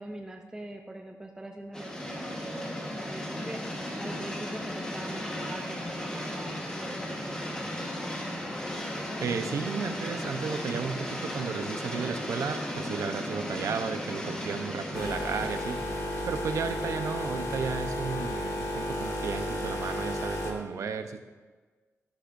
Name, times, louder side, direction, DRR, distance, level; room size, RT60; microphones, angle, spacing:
voice 1, 0.0-3.6 4.0-8.3, right 1 dB, 10° right, 2 dB, 0.6 m, -43 dB
sound 1, 1.7-16.2, left 1 dB, 15° left, 1.4 m, -36 dB
voice 2, 9.2-15.8 16.2-21.2, right 5 dB, 75° right, 7 dB, 0.8 m, -33 dB
sound 2, 14.9-20.5, left 1 dB, 70° left, 1.5 m, -33 dB
13.0 x 11.5 x 2.7 m, 1.4 s
wide cardioid pair, 170°, 5 cm